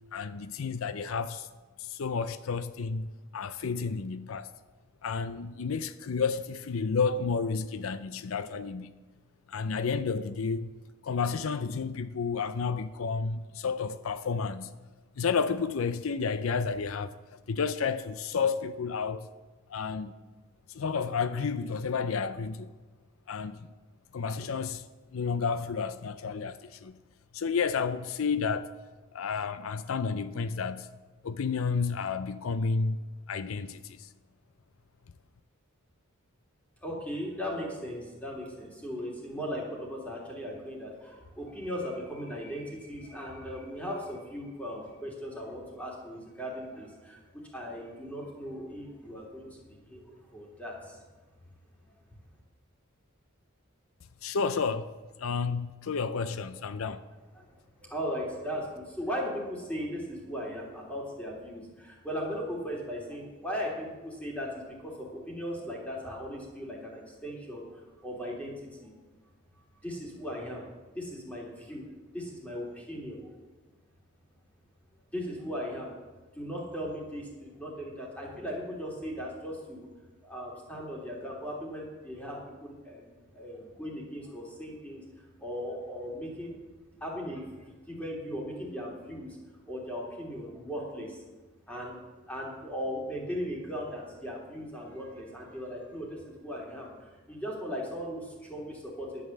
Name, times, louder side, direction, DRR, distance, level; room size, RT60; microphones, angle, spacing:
voice 1, 0.1-1.5 1.8-4.5 5.0-8.9 9.5-10.7 11.0-14.7 15.2-17.1 17.5-19.3 19.7-20.1 20.7-22.7 23.3-23.7 24.1-24.8 25.1-27.0 27.3-28.7 29.1-30.9 31.2-33.0 33.3-34.1 54.2-54.9 55.2-57.0, left 5 dB, 85° left, 0.5 m, -31 dB
voice 2, 36.8-51.0 57.3-57.5 57.8-68.9 69.8-71.9 72.1-73.2 75.1-75.9 76.3-79.9 80.2-85.0 85.4-86.5 87.0-89.4 89.7-91.2 91.7-92.0 92.3-99.2, equal, 5° left, 3.1 m, -38 dB
11.0 x 8.6 x 7.2 m
head